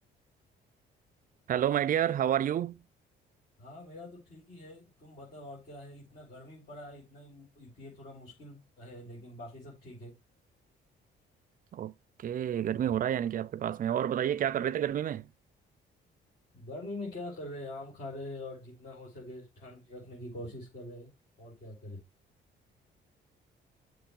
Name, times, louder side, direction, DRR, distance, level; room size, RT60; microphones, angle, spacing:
voice 1, 1.5-2.8 11.7-15.3, right 10 dB, 45° right, 0.4 m, -29 dB
voice 2, 3.6-10.2 16.5-21.1 21.4-22.0, left 1 dB, 55° left, 3.3 m, -44 dB
6.9 x 3.1 x 5.4 m
cardioid pair, 90°, 20 cm